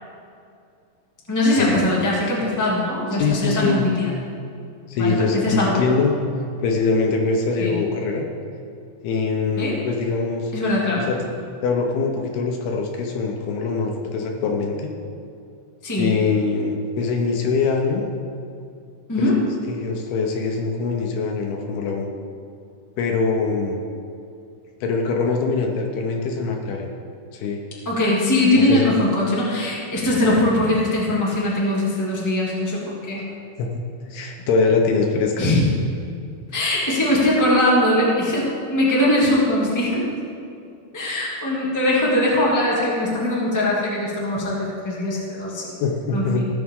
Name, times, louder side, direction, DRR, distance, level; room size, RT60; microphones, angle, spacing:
voice 1, 1.3-4.1 5.0-5.8 7.6-7.8 9.6-9.7 10.5-11.1 15.8-16.1 19.1-19.4 27.8-33.2 35.4-35.7 36.5-40.1 40.9-45.7 46.1-46.5, left 1 dB, 20° left, -6 dB, 0.4 m, -21 dB
voice 2, 3.2-3.8 4.9-6.2 6.6-8.3 9.0-10.5 11.0-11.3 11.6-14.9 16.0-18.0 19.2-19.3 19.7-22.1 23.0-23.8 24.8-26.9 27.3-27.6 28.7-28.9 33.6-35.5 45.8-46.4, left 4 dB, 75° left, 1 dB, 2.6 m, -23 dB
17.0 x 7.6 x 3.8 m, 2.5 s
omnidirectional pair, 5.0 m